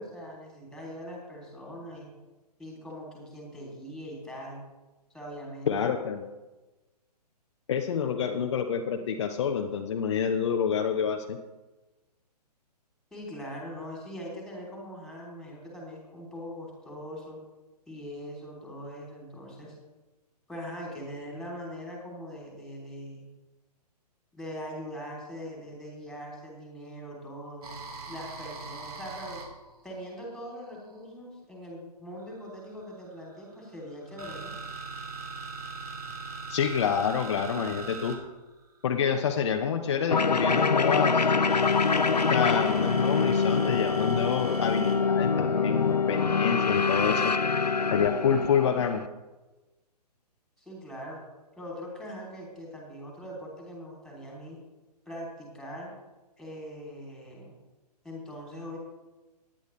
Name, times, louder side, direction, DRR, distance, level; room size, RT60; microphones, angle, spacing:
voice 1, 0.0-2.1 2.6-4.6 5.1-5.9 8.0-8.5 13.1-17.4 17.9-19.7 20.5-23.2 24.3-27.7 28.1-29.4 29.8-34.5 50.6-51.2 51.6-54.6 55.0-55.9 56.4-57.5 58.0-58.8, equal, ahead, -3 dB, 3.2 m, -41 dB
voice 2, 5.7-6.2 7.7-11.4 36.5-38.2 38.8-41.3 42.3-47.3 47.9-49.0, left 7 dB, 45° left, 4 dB, 0.8 m, -27 dB
sound 1, 27.6-31.0 32.2-39.6 41.5-45.0, right 4 dB, 65° right, 2.6 m, -41 dB
sound 2, 40.1-49.1, left 5 dB, 80° left, 0.7 m, -25 dB
17.0 x 10.5 x 3.3 m, 1.1 s
figure-of-eight pair, 125°, 21 cm